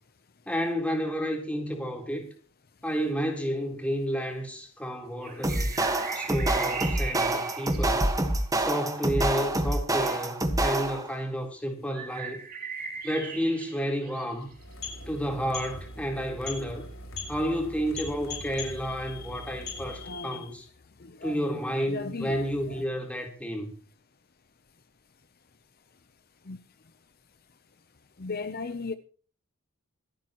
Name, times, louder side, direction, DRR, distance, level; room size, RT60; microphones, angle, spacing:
voice 1, 0.5-2.3 2.8-5.8 6.1-8.0 8.6-12.4 13.0-14.5 15.1-16.9 17.3-20.6 21.2-23.7, equal, 5° left, 3.9 m, -31 dB
sound 1, 5.2-8.4 11.9-14.8, right 5 dB, 45° right, 2.9 m, -38 dB
sound 2, 5.4-11.1, right 1 dB, 15° right, 1.5 m, -27 dB
sound 3, 14.5-20.3, left 3 dB, 75° left, 6.3 m, -40 dB
voice 2, 18.3-20.5 21.0-21.6 21.9-22.8 26.5-26.6 28.2-28.9, left 4 dB, 45° left, 0.8 m, -39 dB
26.5 x 9.0 x 3.1 m
head